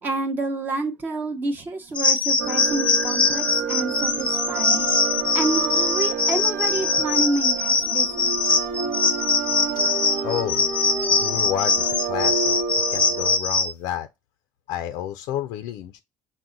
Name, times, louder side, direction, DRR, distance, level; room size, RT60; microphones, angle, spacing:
voice 1, 0.0-4.9 5.3-8.3, right 2 dB, 30° right, 0.7 m, -28 dB
sound 1, 2.0-13.7, left 4 dB, 15° left, 0.5 m, -22 dB
sound 2, 2.4-13.4, right 6 dB, 75° right, 0.8 m, -30 dB
voice 2, 10.2-10.7 11.1-12.6 12.9-14.1 14.7-16.0, left 11 dB, 85° left, 0.4 m, -30 dB
6.0 x 2.1 x 3.8 m
cardioid pair, 155°, 7 cm